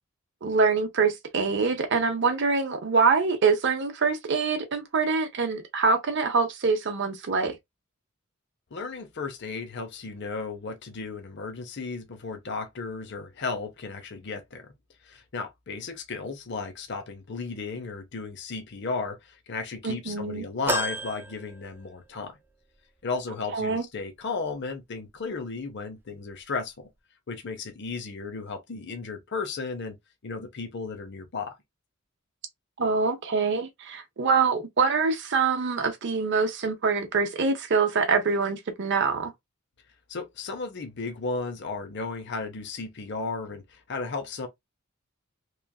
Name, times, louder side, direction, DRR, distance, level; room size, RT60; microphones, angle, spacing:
voice 1, 0.4-7.6 19.8-20.4 23.5-23.8 32.8-39.3, right 4 dB, 55° right, 0.7 m, -25 dB
voice 2, 8.7-14.7 15.0-22.4 23.0-26.9 27.3-30.0 30.2-31.6 40.1-44.5, left 4 dB, 55° left, 0.7 m, -34 dB
sound 1, 20.7-22.3 22.7-22.8 24.0-24.1, right 1 dB, 10° right, 0.3 m, -33 dB
3.1 x 2.4 x 2.3 m
head